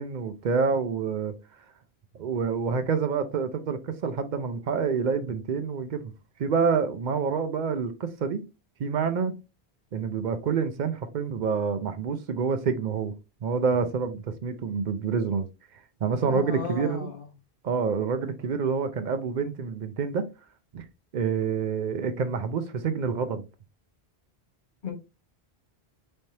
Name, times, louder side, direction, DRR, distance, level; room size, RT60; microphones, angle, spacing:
voice 1, 0.0-1.3 2.1-6.1 6.4-8.4 8.8-9.3 9.9-13.1 13.4-15.5 16.0-17.1 17.6-20.2 20.7-20.8 21.1-23.5, right 5 dB, 55° right, 0.6 m, -27 dB
voice 2, 16.2-17.2 24.8-24.9, left 6 dB, 50° left, 1.3 m, -34 dB
4.3 x 3.3 x 2.7 m
omnidirectional pair, 1.1 m